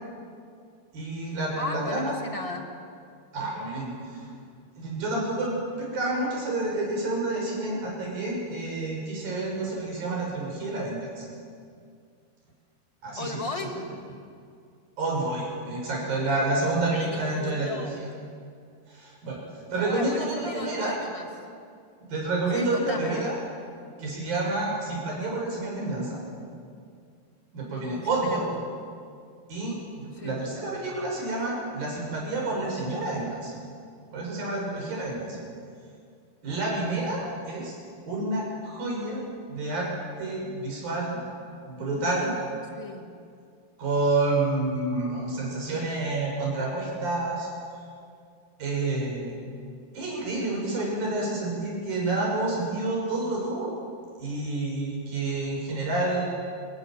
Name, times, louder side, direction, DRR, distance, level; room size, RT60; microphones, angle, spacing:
voice 1, 0.9-2.1 3.3-4.3 4.8-11.3 13.0-13.4 15.0-17.9 18.9-19.4 19.7-21.0 22.1-23.4 24.0-26.2 27.5-28.4 29.5-33.5 34.1-35.4 36.4-37.8 38.1-39.2 39.5-39.9 40.2-41.2 41.6-42.4 43.8-47.5 48.6-49.3 49.9-53.8 54.2-56.3, right 2 dB, 85° right, -2 dB, 8.5 m, -29 dB
voice 2, 1.6-2.7 13.2-13.8 16.9-17.9 19.7-21.3 22.5-23.3 27.9-28.5 30.1-30.4 35.3-35.4 42.7-43.1, left 2 dB, 15° left, 3 dB, 1.2 m, -36 dB
29.5 x 18.5 x 7.6 m, 2.2 s
omnidirectional pair, 4.0 m